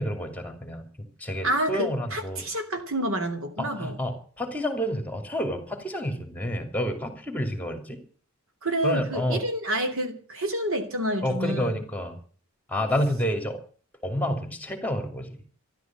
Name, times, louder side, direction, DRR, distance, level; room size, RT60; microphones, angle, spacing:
voice 1, 0.0-2.4 3.6-8.0 8.8-9.4 11.2-12.2 12.7-13.6 14.0-15.4, equal, 10° left, 6 dB, 2.8 m, -29 dB
voice 2, 1.4-4.0 8.6-11.8, right 1 dB, 65° right, 6 dB, 3.0 m, -28 dB
13.5 x 12.0 x 7.5 m, 0.43 s
head